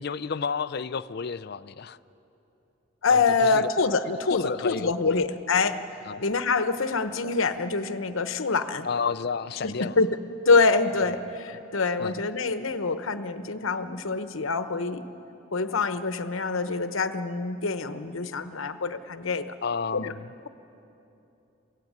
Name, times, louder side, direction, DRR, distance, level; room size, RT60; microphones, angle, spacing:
voice 1, 0.0-2.0 3.1-3.7 4.1-5.2 6.1-6.2 8.8-9.9 12.0-12.2 19.6-20.3, left 5 dB, 50° left, 15 dB, 0.4 m, -31 dB
voice 2, 3.0-5.8 6.2-8.9 9.6-10.2 10.5-15.0 15.5-19.5 19.9-20.1, left 4 dB, 85° left, 10 dB, 1.0 m, -25 dB
23.5 x 16.5 x 9.4 m, 3.0 s
head